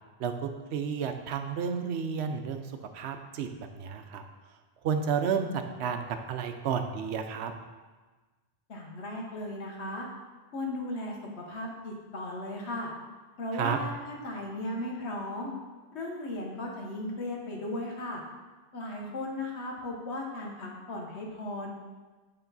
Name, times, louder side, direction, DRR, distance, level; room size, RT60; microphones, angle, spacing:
voice 1, 0.2-2.7 2.9-4.2 4.8-7.5 13.5-13.8, right 6 dB, 85° right, 7 dB, 0.9 m, -31 dB
voice 2, 8.7-10.1 10.5-12.9 13.4-15.5 15.9-18.2 18.7-21.7, left 1 dB, 85° left, 0 dB, 1.3 m, -36 dB
8.1 x 3.6 x 3.9 m, 1.3 s
omnidirectional pair, 1.1 m